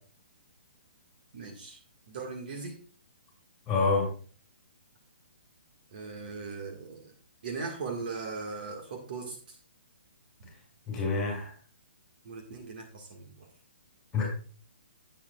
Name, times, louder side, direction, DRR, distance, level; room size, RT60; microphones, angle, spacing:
voice 1, 1.3-1.8 2.1-2.8 5.9-7.1 7.4-9.6 12.3-13.5, right 4 dB, 50° right, 3 dB, 1.7 m, -39 dB
voice 2, 3.7-4.1 10.9-11.5 14.1-14.3, left 4 dB, 10° left, -2 dB, 5.3 m, -27 dB
12.0 x 8.6 x 2.3 m, 0.38 s
hypercardioid pair, 160°, 6 cm